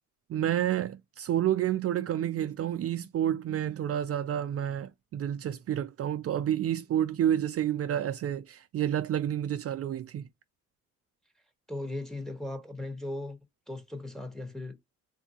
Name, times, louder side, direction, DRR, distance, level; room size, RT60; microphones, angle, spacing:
voice 1, 0.3-10.2, right 11 dB, 50° right, 0.5 m, -29 dB
voice 2, 11.7-13.4 13.7-14.8, left 2 dB, ahead, 1.1 m, -37 dB
3.5 x 2.6 x 2.8 m
cardioid pair, 90°, 30 cm